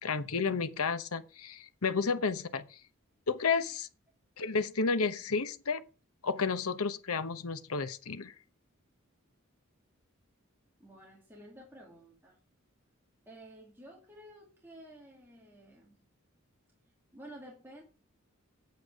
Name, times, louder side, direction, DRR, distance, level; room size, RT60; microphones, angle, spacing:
voice 1, 0.0-2.8 3.3-3.9 4.4-5.9 6.2-8.3, left 4 dB, 80° left, 0.9 m, -31 dB
voice 2, 10.8-12.4 13.3-16.1 17.1-17.8, right 1 dB, 10° right, 2.3 m, -52 dB
8.7 x 8.3 x 4.8 m
head